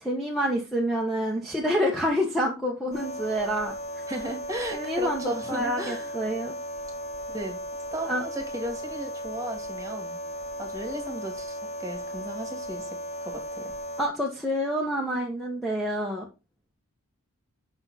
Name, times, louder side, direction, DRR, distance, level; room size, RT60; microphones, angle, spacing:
voice 1, 0.0-3.7 4.7-6.5 8.0-8.2 14.0-16.3, equal, ahead, -4 dB, 1.3 m, -27 dB
sound 1, 2.9-14.1, equal, 30° left, 0.8 m, -36 dB
voice 2, 4.1-6.1 7.3-7.6 7.9-10.2 10.6-13.8, right 1 dB, 15° right, 4 dB, 2.1 m, -36 dB
8.9 x 5.8 x 4.1 m, 0.28 s
head